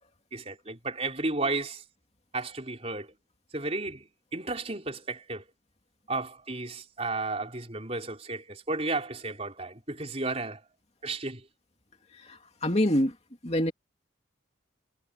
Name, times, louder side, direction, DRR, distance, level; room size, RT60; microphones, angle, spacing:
voice 1, 0.3-1.8 2.3-3.1 3.5-4.1 4.3-5.4 6.1-10.6 11.0-11.4, right 3 dB, 30° right, 4.4 m, -33 dB
voice 2, 12.2-13.1 13.4-13.7, left 1 dB, 30° left, 2.6 m, -26 dB
head